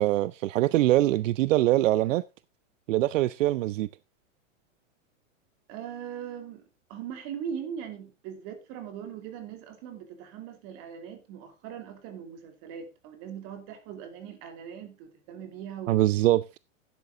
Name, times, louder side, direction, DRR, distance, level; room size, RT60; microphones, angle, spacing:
voice 1, 0.0-2.2 2.9-3.9 15.9-16.6, right 15 dB, 75° right, 0.6 m, -23 dB
voice 2, 5.7-16.0, right 8 dB, 40° right, 2.8 m, -40 dB
12.0 x 9.7 x 3.7 m
supercardioid pair, 155°, 38 cm